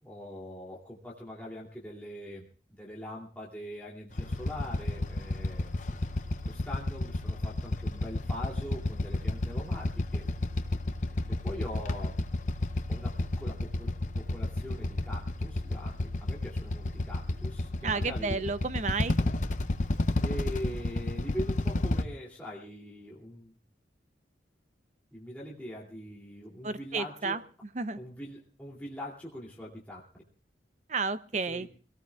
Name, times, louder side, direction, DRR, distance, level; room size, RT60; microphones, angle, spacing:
voice 1, 0.0-5.7 6.4-10.3 11.3-12.2 12.9-18.4 19.2-19.3 20.2-23.5 25.1-27.4 28.0-30.0 31.5-31.7, equal, 10° left, -4 dB, 2.7 m, -42 dB
Motorcycle / Idling, 4.1-22.0, left 2 dB, 40° left, 0.7 m, -31 dB
voice 2, 17.8-19.2 26.6-27.4 27.7-28.0 30.9-31.7, right 4 dB, 40° right, 13 dB, 0.6 m, -32 dB
24.0 x 18.0 x 2.4 m, 0.37 s
head